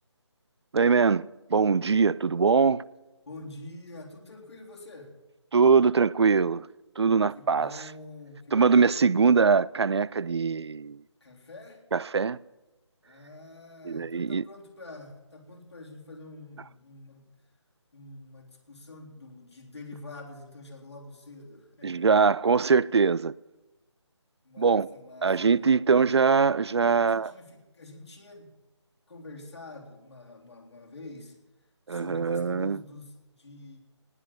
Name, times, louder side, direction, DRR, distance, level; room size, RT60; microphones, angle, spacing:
voice 1, 0.7-2.8 5.5-6.7 7.0-7.7 8.5-11.0 11.9-12.4 13.8-14.5 21.8-23.3 24.6-24.9 25.2-27.3 31.9-32.8, right 5 dB, 65° right, 0.4 m, -22 dB
voice 2, 3.3-5.2 7.3-8.9 11.2-11.8 13.0-17.3 17.9-22.1 24.4-25.8 26.8-28.5 29.1-31.4 31.9-33.8, left 2 dB, 65° left, 3.6 m, -46 dB
18.5 x 7.9 x 7.2 m
figure-of-eight pair, 155°, 15 cm